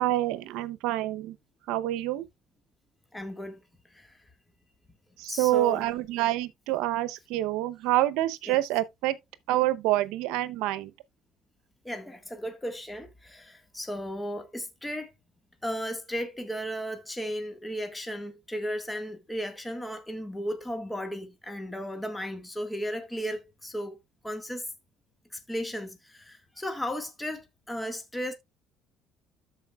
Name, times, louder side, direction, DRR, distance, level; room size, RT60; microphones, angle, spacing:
voice 1, 0.0-1.4 1.7-2.2 5.2-9.2 9.5-10.9, right 15 dB, 80° right, 0.7 m, -27 dB
voice 2, 3.1-3.6 3.9-4.2 5.3-5.8 8.5-8.6 11.8-15.1 15.6-24.0 24.2-24.7 25.3-28.3, equal, 10° left, 1.6 m, -35 dB
13.0 x 4.7 x 2.3 m
supercardioid pair, 90°, 0 cm